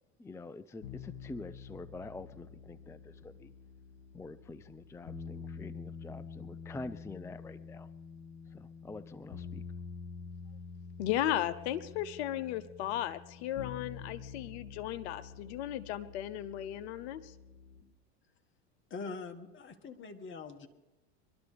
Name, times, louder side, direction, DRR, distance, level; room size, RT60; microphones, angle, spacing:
voice 1, 0.2-3.5 4.1-7.9 8.5-9.6, left 2 dB, 10° left, 14 dB, 0.4 m, -46 dB
sound 1, 0.8-17.8, left 6 dB, 55° left, 3.0 m, -47 dB
voice 2, 11.0-17.3, left 12 dB, 75° left, 13 dB, 0.8 m, -35 dB
voice 3, 18.9-20.7, left 4 dB, 35° left, 5 dB, 2.1 m, -43 dB
24.0 x 13.0 x 3.5 m, 1.1 s
hypercardioid pair, 95°, 33 cm